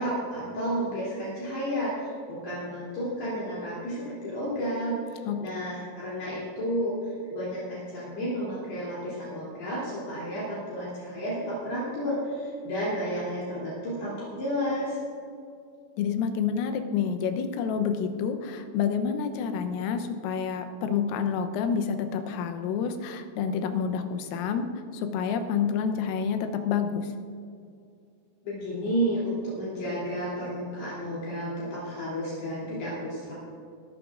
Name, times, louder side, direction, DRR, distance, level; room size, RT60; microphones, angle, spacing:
voice 1, 0.0-6.9 7.3-15.0 28.4-33.3, equal, 55° left, -8 dB, 4.9 m, -31 dB
voice 2, 16.0-24.7 24.9-27.1, left 7 dB, 85° left, 7 dB, 3.6 m, -28 dB
20.5 x 13.0 x 2.5 m, 2.3 s
omnidirectional pair, 5.9 m